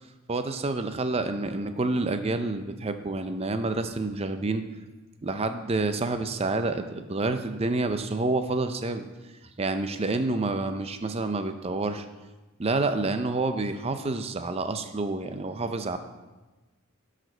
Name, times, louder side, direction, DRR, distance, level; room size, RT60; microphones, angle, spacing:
voice 1, 0.3-4.6 5.2-9.1 9.6-12.0 12.6-16.0, right 2 dB, 25° right, 8 dB, 0.5 m, -28 dB
12.5 x 5.0 x 4.4 m, 1.2 s
head